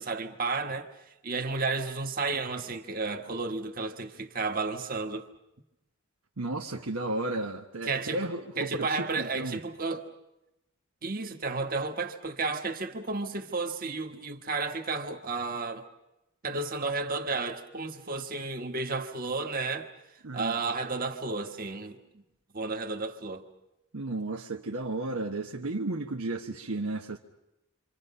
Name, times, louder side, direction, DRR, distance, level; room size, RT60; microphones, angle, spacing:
voice 1, 0.0-5.3 7.8-8.3 8.5-10.1 11.0-15.8 16.4-22.0 22.5-23.4, right 3 dB, 40° right, 1.6 m, -32 dB
voice 2, 6.4-9.6 20.2-20.6 23.9-27.2, right 2 dB, 90° right, 1.3 m, -33 dB
28.0 x 26.0 x 5.6 m
head